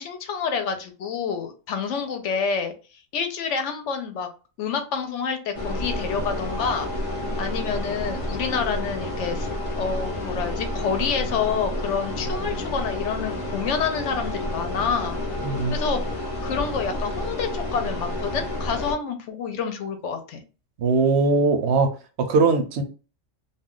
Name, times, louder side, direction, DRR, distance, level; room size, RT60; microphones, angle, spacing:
voice 1, 0.0-4.3 4.6-6.9 7.4-15.2 15.7-16.0 16.4-20.4, left 6 dB, 70° left, 0.9 m, -28 dB
sound 1, 5.5-18.9, left 1 dB, 40° left, 0.5 m, -30 dB
voice 2, 15.4-15.8 20.8-21.9 22.2-22.8, right 4 dB, 65° right, 0.8 m, -20 dB
2.4 x 2.2 x 3.6 m
omnidirectional pair, 1.3 m